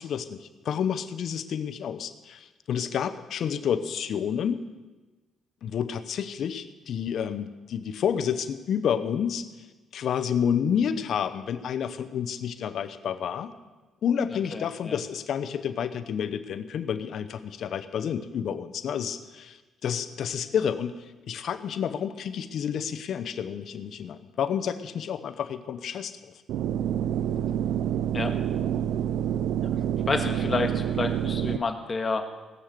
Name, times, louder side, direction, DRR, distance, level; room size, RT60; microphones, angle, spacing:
voice 1, 0.0-4.6 5.6-9.5 9.9-13.5 14.0-21.0 21.3-26.2, left 8 dB, 65° left, 10 dB, 0.8 m, -29 dB
voice 2, 14.5-15.0 28.1-28.3 30.1-32.2, left 4 dB, 35° left, 5 dB, 1.6 m, -29 dB
sound 1, 26.5-31.6, right 10 dB, 85° right, 0.4 m, -27 dB
17.5 x 6.6 x 7.7 m, 1.2 s
cardioid pair, 90°, 0 cm